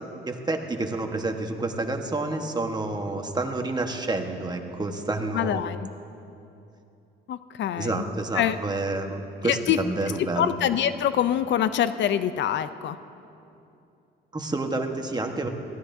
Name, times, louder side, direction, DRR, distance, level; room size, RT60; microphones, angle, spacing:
voice 1, 0.3-5.6 7.8-10.6 14.3-15.5, right 2 dB, 20° right, 4 dB, 1.3 m, -29 dB
voice 2, 5.3-5.9 7.3-8.1 8.3-8.6 9.4-9.8 10.2-13.0, left 10 dB, 65° left, 13 dB, 0.5 m, -25 dB
20.5 x 16.0 x 2.7 m, 2.7 s
cardioid pair, 90°, 20 cm